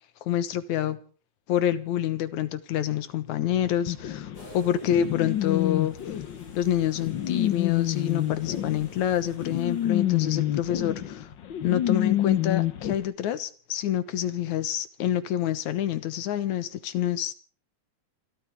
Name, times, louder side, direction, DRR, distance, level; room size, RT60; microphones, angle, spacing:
voice 1, 0.3-1.0 1.5-6.0 6.5-11.3 11.6-17.3, left 11 dB, 75° left, 2.6 m, -27 dB
sound 1, 3.9-13.0, left 12 dB, 60° left, 1.2 m, -28 dB
sound 2, 4.3-10.4, right 1 dB, 30° left, 7.9 m, -52 dB
28.0 x 13.5 x 3.6 m
omnidirectional pair, 3.4 m